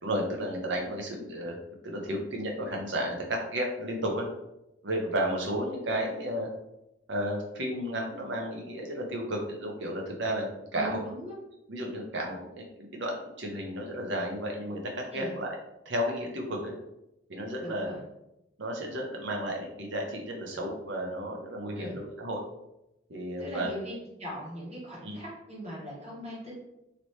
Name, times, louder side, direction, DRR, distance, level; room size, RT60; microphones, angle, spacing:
voice 1, 0.0-1.6 1.8-4.3 4.8-6.5 7.1-11.0 11.7-14.8 15.1-15.6 15.9-16.7 17.3-17.9 18.6-22.4 23.1-23.7 25.0-25.2, equal, 75° right, 0 dB, 0.8 m, -33 dB
voice 2, 10.7-11.3 15.1-15.3 17.6-18.0 21.7-22.0 23.4-23.9 24.2-26.5, equal, 35° right, -6 dB, 1.3 m, -39 dB
2.9 x 2.9 x 3.1 m, 0.89 s
head